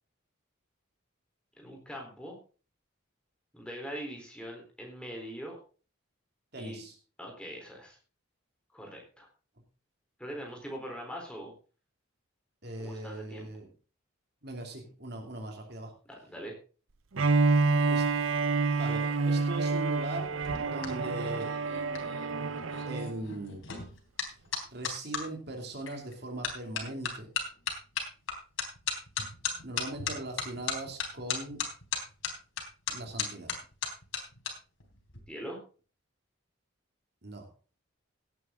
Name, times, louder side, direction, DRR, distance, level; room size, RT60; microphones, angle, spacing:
voice 1, 1.6-2.3 3.5-5.6 6.6-6.8 7.2-8.0 8.7-9.3 10.2-11.5 12.8-13.5 16.1-16.5 35.3-35.6, equal, 5° left, 0 dB, 3.8 m, -42 dB
voice 2, 6.5-7.0 12.6-13.7 14.4-15.9 17.9-18.1 18.7-21.5 22.9-23.6 24.7-27.3 29.6-31.6 32.9-33.5 37.2-37.5, right 2 dB, 50° right, 2 dB, 2.8 m, -40 dB
Bowed string instrument, 17.1-23.2, right 4 dB, 75° right, 0.7 m, -28 dB
sound 1, 20.2-25.2 25.9-26.1 26.4-34.5 34.8-35.2, left 6 dB, 75° left, 3.7 m, -36 dB
17.0 x 9.2 x 3.8 m, 0.37 s
head